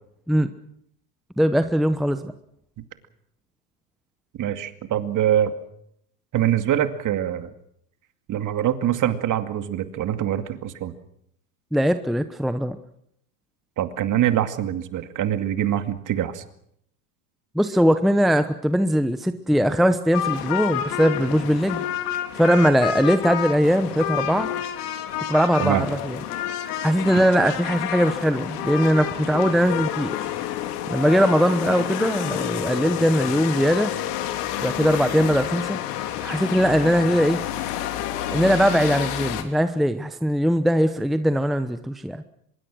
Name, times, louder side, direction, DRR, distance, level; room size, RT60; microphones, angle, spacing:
voice 1, 1.4-2.3 11.7-12.8 17.5-21.8 22.3-24.5 25.3-26.2 26.8-30.3 30.9-33.9 34.6-35.8 36.2-37.4 38.3-42.2, equal, ahead, 10 dB, 0.9 m, -20 dB
voice 2, 4.4-5.5 6.3-7.5 8.3-10.9 13.8-16.4 25.6-25.9, right 11 dB, 40° right, 9 dB, 2.3 m, -24 dB
sound 1, 20.1-39.4, left 11 dB, 75° left, 3.2 m, -29 dB
24.5 x 22.0 x 6.3 m, 0.72 s
supercardioid pair, 115°, 47 cm